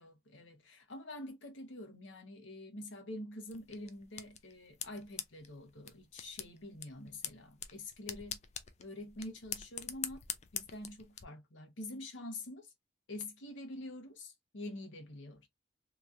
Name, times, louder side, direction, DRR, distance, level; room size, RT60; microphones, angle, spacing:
voice 1, 0.0-8.4 8.8-10.2 10.5-12.7 13.1-15.5, left 1 dB, 80° left, 0.9 m, -46 dB
sound 1, 3.5-11.2, left 9 dB, 35° left, 0.3 m, -45 dB
3.0 x 2.3 x 2.6 m
head